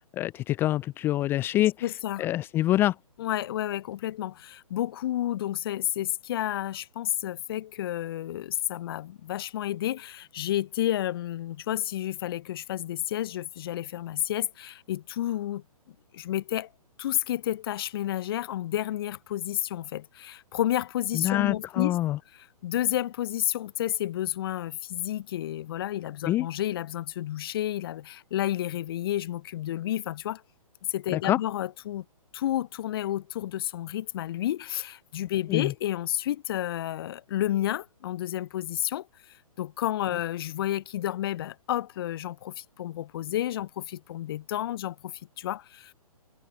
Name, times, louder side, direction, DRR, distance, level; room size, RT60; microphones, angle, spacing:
voice 1, 0.1-1.7 2.2-3.0 21.1-22.2 26.2-26.5 31.1-31.4 35.5-35.7, left 14 dB, 10° left, 0.4 m, -25 dB
voice 2, 1.8-2.3 3.2-15.6 16.1-16.7 17.0-22.0 22.6-30.4 30.9-32.0 32.3-39.1 39.6-45.9, left 12 dB, 40° left, 0.7 m, -31 dB
figure-of-eight pair, 125°, 19 cm